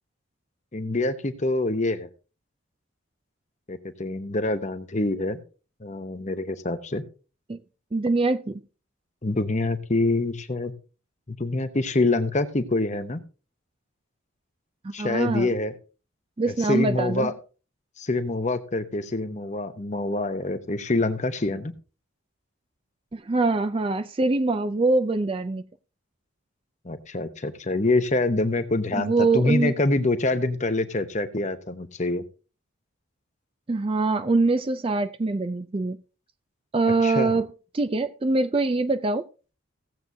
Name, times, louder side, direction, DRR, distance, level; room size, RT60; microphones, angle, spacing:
voice 1, 0.7-2.1 3.7-5.4 5.8-7.0 9.2-10.7 11.3-13.2 14.9-15.7 16.5-17.3 18.0-21.7 26.8-32.2 37.0-37.4, left 2 dB, 35° left, 0.9 m, -26 dB
voice 2, 7.9-8.6 14.8-15.5 16.4-17.3 23.1-25.6 28.9-29.7 33.7-36.0 36.7-37.5 37.7-39.2, right 3 dB, 25° right, 0.4 m, -23 dB
17.0 x 7.8 x 2.7 m
head